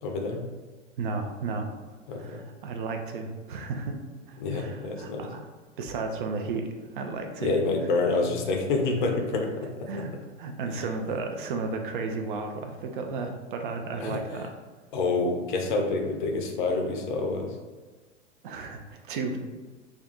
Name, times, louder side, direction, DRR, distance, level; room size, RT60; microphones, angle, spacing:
voice 1, 0.0-0.4 2.1-2.4 4.4-5.3 7.4-10.0 10.7-10.8 14.0-14.2 14.9-17.6, left 3 dB, 40° left, 2 dB, 0.6 m, -28 dB
voice 2, 1.0-1.7 2.1-3.9 4.3-5.5 5.8-6.7 6.9-7.6 9.9-10.1 10.4-14.5 18.4-19.4, right 4 dB, 45° right, 4 dB, 0.4 m, -33 dB
2.5 x 2.3 x 3.9 m, 1.3 s
figure-of-eight pair, 95°, 37 cm